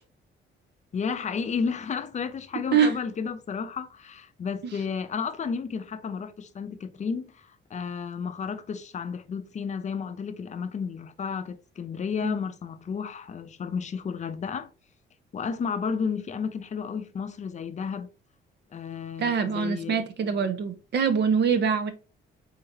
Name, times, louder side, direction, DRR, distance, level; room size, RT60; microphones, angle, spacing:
voice 1, 0.9-14.7 15.3-18.1 18.7-20.0, left 6 dB, 35° left, 0.6 m, -32 dB
voice 2, 19.2-21.9, right 6 dB, 60° right, 0.8 m, -24 dB
4.0 x 3.8 x 2.7 m
cardioid pair, 90°, 20 cm